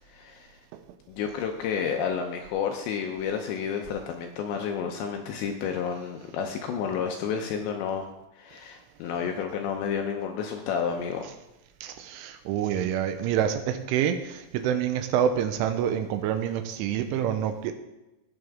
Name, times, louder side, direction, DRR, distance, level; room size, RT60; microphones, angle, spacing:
voice 1, 0.1-0.6 1.1-8.1 8.4-11.2, left 7 dB, 80° left, 3 dB, 2.6 m, -30 dB
voice 2, 11.8-17.8, right 9 dB, 80° right, 8 dB, 3.1 m, -27 dB
18.5 x 6.8 x 3.5 m, 0.99 s
omnidirectional pair, 5.9 m